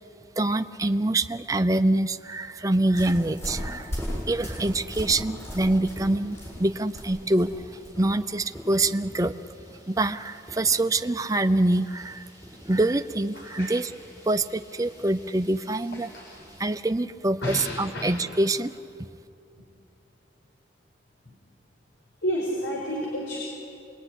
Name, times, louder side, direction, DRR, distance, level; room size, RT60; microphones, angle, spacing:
voice 1, 0.4-3.9 4.3-9.3 9.9-12.3 12.7-13.9 14.2-16.1 16.6-18.8, right 2 dB, 20° right, 8 dB, 0.6 m, -25 dB
sound 1, 2.9-16.6, equal, 15° left, 6.9 m, -40 dB
voice 2, 15.9-16.2 17.4-18.1 22.2-23.4, equal, 90° left, -2 dB, 4.9 m, -30 dB
26.0 x 21.5 x 9.9 m, 2.7 s
head